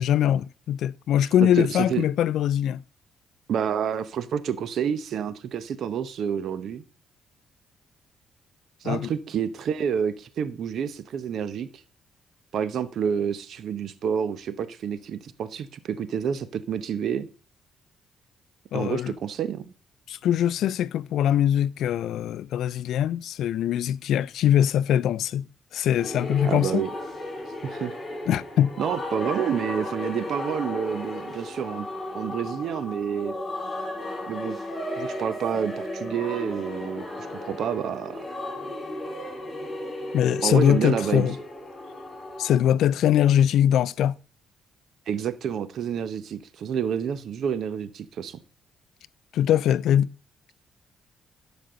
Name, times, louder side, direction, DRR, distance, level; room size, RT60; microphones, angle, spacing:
voice 1, 0.0-2.8 8.8-9.1 18.7-19.1 20.1-25.5 25.7-26.8 28.3-28.7 40.1-41.4 42.4-44.2 49.3-50.1, left 10 dB, 75° left, 0.3 m, -22 dB
voice 2, 1.4-2.0 3.5-6.8 8.8-11.8 12.5-17.3 18.7-19.7 26.4-26.9 27.6-27.9 28.8-31.9 32.1-33.3 34.3-34.6 35.0-38.3 40.4-41.3 45.1-48.4, right 8 dB, 65° right, 0.7 m, -29 dB
sound 1, 26.0-42.6, left 1 dB, 30° left, 4.1 m, -35 dB
12.0 x 5.2 x 3.8 m
cardioid pair, 90°, 0 cm